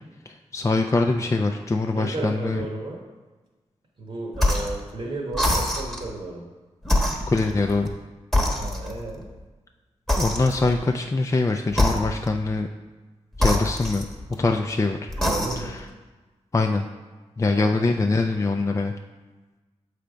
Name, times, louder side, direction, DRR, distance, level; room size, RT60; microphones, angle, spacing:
voice 1, 0.3-2.7 7.3-7.9 10.2-12.7 13.4-14.1 14.4-15.0 15.6-15.8 16.5-16.8 17.4-18.9, left 3 dB, 25° left, 4 dB, 0.4 m, -23 dB
voice 2, 1.9-3.0 4.0-6.4 8.6-9.2 15.1-15.8 17.4-17.7, right 2 dB, 55° right, -2 dB, 1.2 m, -33 dB
sound 1, 4.3-4.8 5.3-6.1 6.8-8.0 8.3-9.1 10.1-10.8 11.7-12.4 13.3-14.5 15.1-15.8, left 1 dB, 5° left, 1.1 m, -25 dB
6.9 x 3.3 x 5.1 m, 1.2 s
cardioid pair, 55°, 12 cm